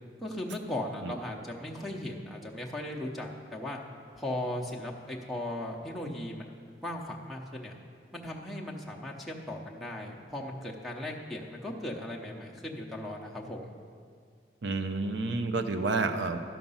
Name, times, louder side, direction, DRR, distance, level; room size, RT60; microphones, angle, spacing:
voice 1, 0.2-3.8 4.1-6.5 6.8-7.8 8.1-13.7, left 1 dB, ahead, 0 dB, 0.7 m, -37 dB
voice 2, 14.6-16.4, right 3 dB, 85° right, 8 dB, 0.7 m, -29 dB
12.5 x 5.8 x 5.5 m, 2.1 s
head